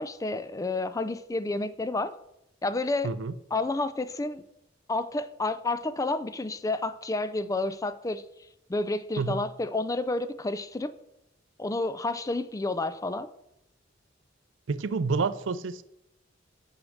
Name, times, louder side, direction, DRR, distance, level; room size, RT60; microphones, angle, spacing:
voice 1, 0.0-2.2 2.6-3.1 3.5-4.4 4.9-8.2 8.7-10.9 11.6-13.3, left 2 dB, 15° left, 0.4 m, -30 dB
voice 2, 3.0-3.3 9.2-9.4 14.7-15.8, right 4 dB, 75° right, 0.5 m, -29 dB
6.4 x 6.3 x 6.3 m
head